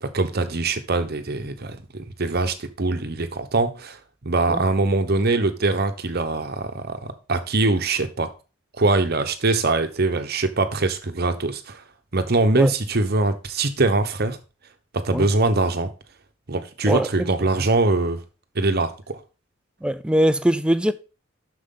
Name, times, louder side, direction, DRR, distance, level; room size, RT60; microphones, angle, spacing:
voice 1, 0.0-4.0 4.2-8.3 8.8-11.8 12.1-14.4 14.9-15.9 16.5-18.2 18.5-19.2, right 3 dB, 50° right, 1.0 m, -23 dB
voice 2, 19.8-20.9, equal, 5° right, 0.4 m, -21 dB
7.9 x 6.4 x 3.9 m
head